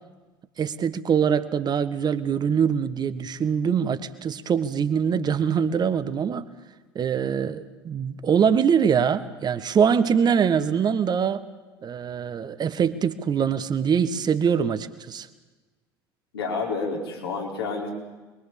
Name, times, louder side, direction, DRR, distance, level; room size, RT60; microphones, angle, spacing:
voice 1, 0.6-6.5 6.9-11.5 11.8-15.3, right 7 dB, 30° right, 12 dB, 1.6 m, -23 dB
voice 2, 16.3-17.9, left 4 dB, 75° left, 0 dB, 4.7 m, -29 dB
27.0 x 23.0 x 7.2 m, 1.2 s
figure-of-eight pair, 65°, 13 cm